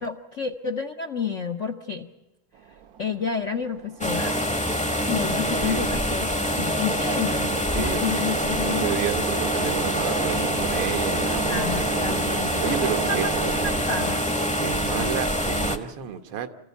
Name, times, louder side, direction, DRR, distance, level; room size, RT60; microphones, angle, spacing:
voice 1, 0.0-2.1 3.0-4.3 5.1-8.9 10.3-10.7 11.5-14.2 15.0-15.1, left 5 dB, 60° left, 5 dB, 0.8 m, -30 dB
sound 1, 2.5-14.1, right 8 dB, 55° right, 1.2 m, -34 dB
sound 2, 4.0-15.8, equal, 5° left, 0.7 m, -25 dB
voice 2, 5.1-5.9 7.5-8.3 8.6-12.0 12.6-13.3 14.5-16.5, right 8 dB, 75° right, 8 dB, 2.1 m, -32 dB
27.0 x 15.0 x 8.3 m, 1.0 s
omnidirectional pair, 2.4 m